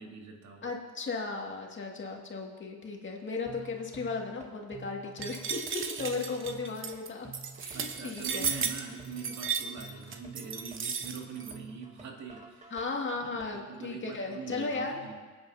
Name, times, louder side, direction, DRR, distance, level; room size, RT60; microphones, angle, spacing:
voice 1, 0.0-0.7 7.7-12.7 13.2-15.2, right 5 dB, 65° right, 0 dB, 2.3 m, -43 dB
voice 2, 0.6-7.3 7.6-8.5 12.7-15.0, left 3 dB, 40° left, 0 dB, 2.0 m, -36 dB
sound 1, 3.5-13.4, right 3 dB, 25° right, 1.5 m, -50 dB
sound 2, 5.2-11.5, right 6 dB, 40° right, 0.9 m, -35 dB
23.5 x 8.9 x 2.8 m, 1.4 s
cardioid pair, 90°, 30 cm